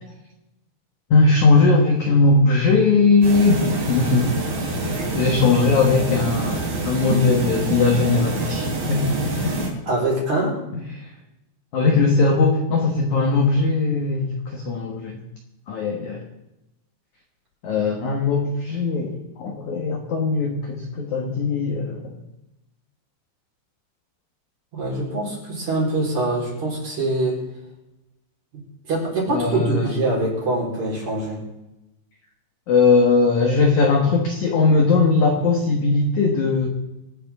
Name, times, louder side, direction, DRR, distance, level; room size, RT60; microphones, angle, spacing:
voice 1, 1.1-4.3 4.8-9.6 11.0-11.1 11.7-15.2 15.7-16.2 17.6-22.1 29.3-29.8 32.7-36.7, left 3 dB, 60° left, 2 dB, 2.0 m, -19 dB
sound 1, 3.2-9.7, right 2 dB, 60° right, 5.2 m, -26 dB
voice 2, 9.9-10.6 24.7-27.4 28.8-31.4, right 2 dB, 40° right, -3 dB, 5.3 m, -24 dB
26.0 x 9.7 x 3.7 m, 0.94 s
omnidirectional pair, 5.3 m